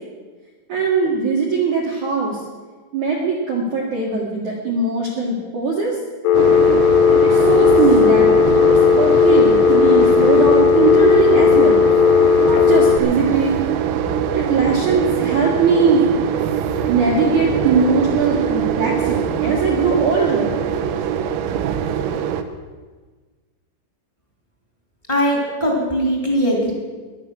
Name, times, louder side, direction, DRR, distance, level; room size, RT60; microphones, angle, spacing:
voice 1, 0.7-2.4 2.9-6.0 7.2-8.3 8.7-11.9 12.5-13.6 14.3-16.1 16.9-20.6, right 4 dB, 60° right, -3 dB, 2.1 m, -20 dB
Telephone, 6.2-13.0, left 7 dB, 85° left, 3.0 m, -14 dB
sound 1, 6.3-22.4, right 8 dB, 85° right, 3.5 m, -22 dB
voice 2, 25.1-26.7, equal, 15° left, -1 dB, 1.6 m, -20 dB
17.0 x 11.0 x 6.4 m, 1.4 s
omnidirectional pair, 6.0 m